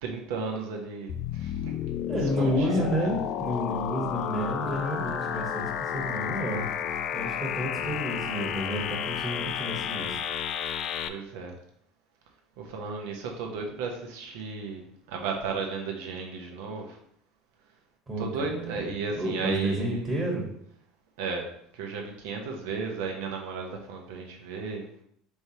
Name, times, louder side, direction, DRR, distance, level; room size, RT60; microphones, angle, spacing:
voice 1, 0.0-1.8 2.4-3.1 11.1-11.5 12.6-17.0 18.2-20.1 21.2-21.5 21.7-24.9, right 4 dB, 70° right, 1 dB, 0.8 m, -34 dB
sound 1, 1.1-11.1, left 9 dB, 55° left, 0.3 m, -31 dB
voice 2, 2.1-6.7 7.1-10.2 18.1-18.8 19.1-20.4, equal, 25° right, -3 dB, 1.3 m, -30 dB
4.5 x 3.3 x 2.8 m, 0.69 s
hypercardioid pair, 75°, 0 cm